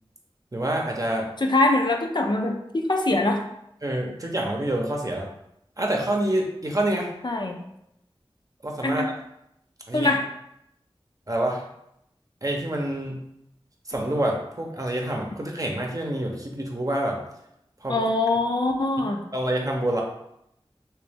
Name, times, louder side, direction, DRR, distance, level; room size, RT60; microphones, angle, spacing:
voice 1, 0.5-1.3 3.8-5.3 5.8-7.1 8.6-9.1 9.9-10.1 11.3-11.6 12.4-13.2 13.9-17.2 17.8-18.0 19.3-20.0, right 1 dB, 40° right, 0 dB, 0.7 m, -27 dB
voice 2, 1.4-3.4 7.2-7.6 8.8-9.1 9.9-10.3 17.9-19.2, left 2 dB, 50° left, 2 dB, 0.5 m, -23 dB
3.0 x 3.0 x 3.4 m, 0.79 s
wide cardioid pair, 50°, 10 cm